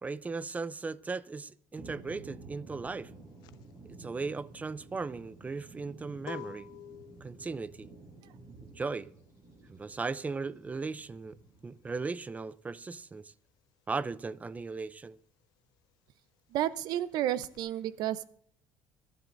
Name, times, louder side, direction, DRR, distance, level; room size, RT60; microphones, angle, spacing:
voice 1, 0.0-3.1 4.0-6.7 7.2-7.9 8.6-9.1 9.7-11.4 11.6-13.3 13.9-15.2, right 4 dB, 20° right, 0.6 m, -37 dB
sound 1, 1.8-12.0, right 3 dB, 50° right, 7.1 m, -52 dB
sound 2, 2.9-13.1 13.4-17.6, left 12 dB, 75° left, 0.6 m, -51 dB
voice 2, 16.5-18.2, right 12 dB, 70° right, 0.8 m, -31 dB
25.0 x 10.5 x 2.6 m
cardioid pair, 105°, 7 cm